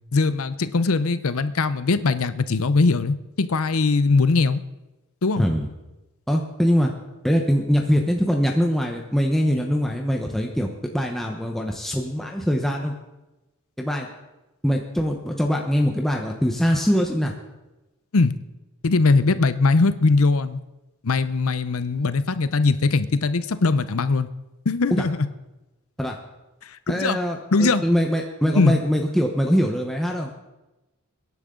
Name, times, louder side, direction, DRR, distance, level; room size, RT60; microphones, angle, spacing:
voice 1, 0.1-4.6 5.2-5.5 18.1-18.3 18.8-20.6 21.0-24.3 24.7-25.2 26.6-27.2 27.5-27.8 28.6-28.8, left 3 dB, 75° left, 14 dB, 0.7 m, -20 dB
voice 2, 5.4-5.7 6.3-6.9 7.2-12.9 13.8-14.1 14.6-17.3 24.9-25.1 26.0-26.2 26.9-30.3, equal, ahead, 1 dB, 0.9 m, -23 dB
22.0 x 10.5 x 3.8 m, 1.0 s
head